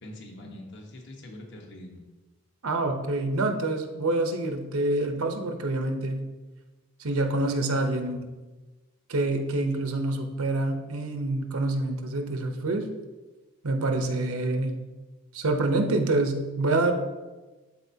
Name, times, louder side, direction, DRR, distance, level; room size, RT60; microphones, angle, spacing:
voice 1, 0.0-2.0, left 1 dB, 55° left, 1 dB, 1.1 m, -44 dB
voice 2, 2.6-6.3 7.0-8.3 9.1-12.9 13.6-14.8 15.3-16.9, right 2 dB, 85° right, 5 dB, 0.8 m, -26 dB
12.5 x 4.2 x 2.8 m, 1.2 s
head